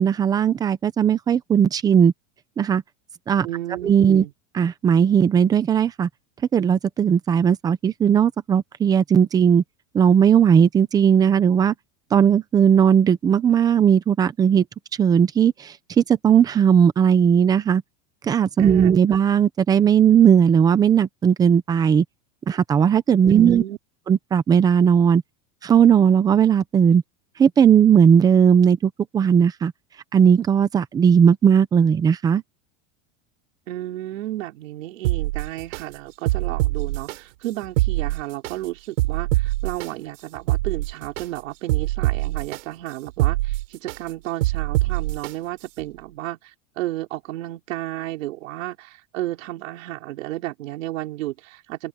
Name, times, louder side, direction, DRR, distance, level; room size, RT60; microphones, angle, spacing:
voice 1, 0.0-2.1 2.6-2.8 3.3-3.5 3.8-4.2 4.5-6.1 6.5-9.6 9.9-11.7 12.1-14.6 15.0-17.8 18.2-22.0 22.5-23.6 24.1-25.2 25.6-27.0 27.4-29.7 30.1-32.4, right 8 dB, 10° right, 0.6 m, -17 dB
voice 2, 3.4-4.3 18.6-19.0 23.2-23.8 33.7-51.9, right 16 dB, 90° right, 5.2 m, -32 dB
sound 1, 35.0-35.8 36.3-37.2 37.6-38.5 39.0-39.9 40.3-41.3 41.7-42.6 43.1-44.0 44.4-45.3 45.8-45.9, right 18 dB, 70° right, 5.8 m, -23 dB
supercardioid pair, 175°, 38 cm